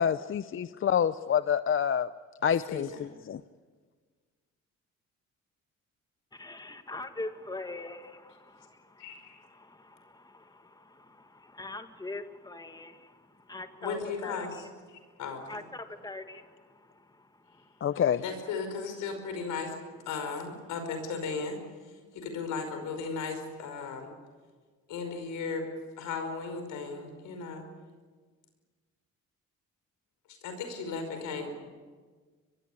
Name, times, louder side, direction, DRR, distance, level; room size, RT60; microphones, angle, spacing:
voice 1, 0.0-2.1 2.4-3.4 17.8-18.2, left 8 dB, 45° left, 14 dB, 0.6 m, -27 dB
voice 2, 2.7-3.0 9.0-9.4 13.8-15.6 18.1-19.8 20.1-24.1 24.9-25.7 26.0-27.6 30.3-31.5, left 4 dB, 85° left, 6 dB, 5.3 m, -36 dB
voice 3, 6.3-14.6 14.9-15.0 15.5-17.7, left 2 dB, 15° left, 7 dB, 1.9 m, -43 dB
24.0 x 22.5 x 8.5 m, 1.5 s
cardioid pair, 90°, 30 cm